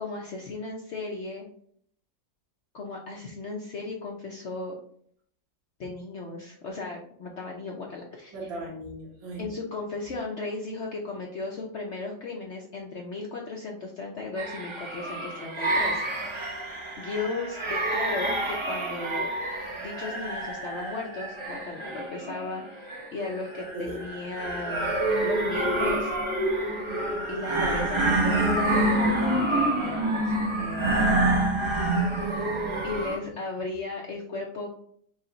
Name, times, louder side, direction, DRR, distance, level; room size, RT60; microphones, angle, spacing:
voice 1, 0.0-1.5 2.7-4.7 5.8-8.4 9.4-16.5 17.0-19.3 19.8-24.9 25.2-26.2 27.3-32.0 32.8-34.7, left 3 dB, 75° left, -1 dB, 0.6 m, -36 dB
voice 2, 8.3-9.5 23.7-24.0 32.2-33.0, right 1 dB, 50° right, -4 dB, 1.6 m, -36 dB
sound 1, 14.4-33.2, right 1 dB, 35° right, 0.4 m, -27 dB
5.2 x 2.5 x 3.9 m, 0.62 s
omnidirectional pair, 2.1 m